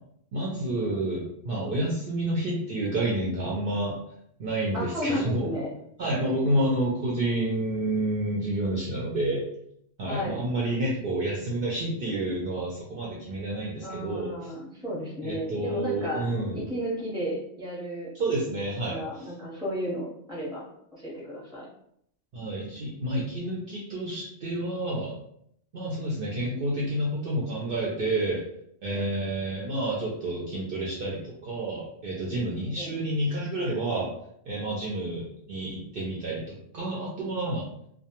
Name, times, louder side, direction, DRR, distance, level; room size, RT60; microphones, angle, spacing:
voice 1, 0.3-4.0 4.4-5.5 6.0-9.4 10.0-14.5 15.2-16.6 18.1-19.3 22.3-25.1 25.7-28.4 28.8-34.1 34.5-37.7, right 1 dB, 60° right, -5 dB, 0.6 m, -29 dB
voice 2, 4.7-5.7 6.2-6.6 10.1-10.4 13.8-16.2 16.5-18.1 18.8-20.6 20.9-21.7 28.9-29.0 32.8-32.9, equal, 5° right, -5 dB, 0.6 m, -33 dB
2.2 x 2.2 x 2.8 m, 0.72 s
omnidirectional pair, 1.3 m